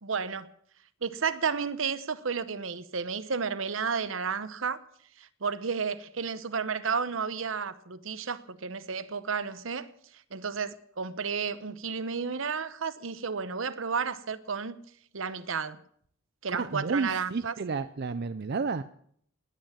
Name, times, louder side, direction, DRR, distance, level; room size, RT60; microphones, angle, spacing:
voice 1, 0.0-0.5 1.0-4.8 5.2-9.9 10.3-14.8 15.1-15.8 16.4-17.5, right 5 dB, 75° right, 0.9 m, -32 dB
voice 2, 16.5-18.8, right 4 dB, 55° right, 0.5 m, -31 dB
19.5 x 9.1 x 7.4 m
head